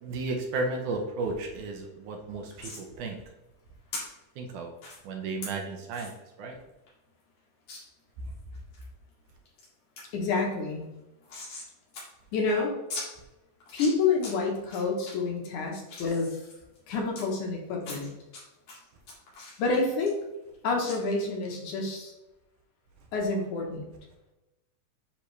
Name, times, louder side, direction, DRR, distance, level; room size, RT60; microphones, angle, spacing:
voice 1, 0.0-3.2 4.4-4.7 5.0-6.1 6.4-6.6, right 3 dB, 75° right, 2 dB, 2.1 m, -33 dB
sound 1, 2.6-2.8 3.9-4.0 4.8-5.0 5.4-5.5 5.9-6.1 6.5-6.6 6.9-7.0 7.7-7.8 8.3-8.8 9.3-9.7 10.0-10.1 10.3-11.7 11.9-12.0 12.3-12.4 12.9-13.1 13.6-14.3 14.7-15.1 15.6-17.2 17.8-18.4 18.7-20.6 20.8-21.0, left 2 dB, 55° left, 3.2 m, -40 dB
voice 2, 10.1-10.9 12.3-12.7 13.7-16.4 16.9-18.1 19.6-20.2 20.6-22.1 23.1-23.9, left 3 dB, 70° left, 0 dB, 2.4 m, -28 dB
9.9 x 3.6 x 3.2 m, 0.97 s
omnidirectional pair, 3.9 m